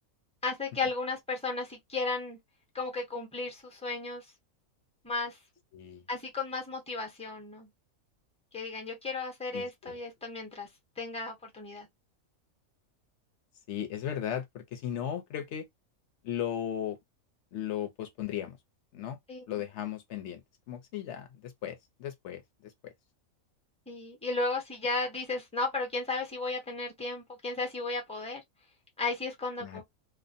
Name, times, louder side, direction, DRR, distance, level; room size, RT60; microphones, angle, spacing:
voice 1, 0.4-2.4 2.7-4.2 5.0-5.4 6.1-7.7 8.5-10.7 11.0-11.9 19.3-19.4 23.9-28.4 29.0-29.8, left 3 dB, 5° left, 0.5 m, -34 dB
voice 2, 5.7-6.0 9.5-9.9 13.7-15.7 16.2-17.0 17.5-18.6 18.9-19.2 19.5-22.9 29.6-29.8, left 10 dB, 60° left, 0.8 m, -36 dB
2.4 x 2.1 x 2.6 m
omnidirectional pair, 1.5 m